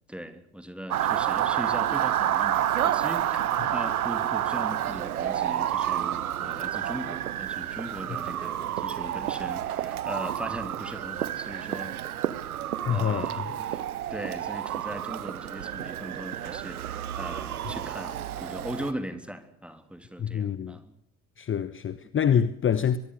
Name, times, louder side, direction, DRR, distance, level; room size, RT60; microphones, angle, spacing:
voice 1, 0.1-11.9 12.9-20.9, equal, 5° right, 3.1 m, -39 dB
Motor vehicle (road) / Siren, 0.9-18.9, right 11 dB, 80° right, 1.1 m, -29 dB
voice 2, 12.8-13.6 20.2-20.8 21.4-23.0, left 8 dB, 25° left, 1.2 m, -26 dB
23.0 x 22.5 x 6.6 m
figure-of-eight pair, 65°, 44 cm